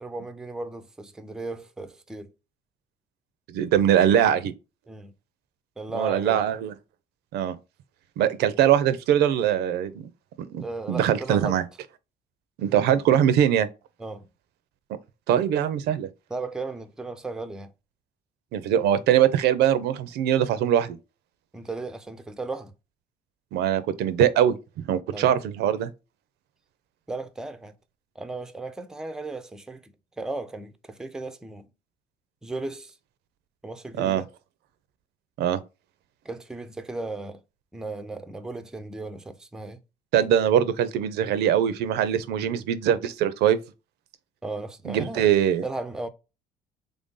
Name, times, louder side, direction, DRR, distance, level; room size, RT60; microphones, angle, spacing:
voice 1, 0.0-2.3 4.9-5.1 5.8-6.4 10.6-11.6 14.0-14.3 16.3-17.7 21.5-22.7 25.1-25.3 27.1-27.8 28.2-31.7 32.4-33.0 33.6-34.3 36.2-37.4 37.7-39.8 44.4-45.3 45.6-46.1, right 2 dB, 5° right, 0.4 m, -35 dB
voice 2, 3.5-4.5 5.9-6.7 7.3-7.5 8.2-10.1 10.4-11.6 12.6-13.7 15.3-16.1 18.5-21.0 23.5-24.6 24.9-25.9 34.0-34.2 35.4-35.6 40.1-43.6 44.9-45.6, right 10 dB, 80° right, 0.5 m, -22 dB
3.4 x 2.6 x 3.6 m
cardioid pair, 110°, 17 cm